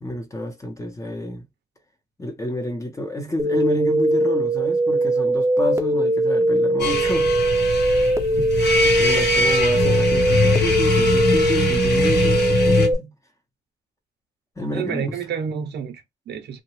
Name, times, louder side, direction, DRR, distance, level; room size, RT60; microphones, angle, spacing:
voice 1, 0.0-1.4 2.2-7.8 9.0-13.1 14.6-15.2, left 1 dB, 20° left, 0.7 m, -29 dB
sound 1, 3.4-12.9, right 2 dB, 15° right, 0.5 m, -20 dB
sound 2, 6.8-12.9, left 3 dB, 90° left, 1.2 m, -22 dB
voice 2, 14.7-16.6, right 7 dB, 85° right, 0.6 m, -30 dB
2.8 x 2.1 x 3.1 m
wide cardioid pair, 115°, 17 cm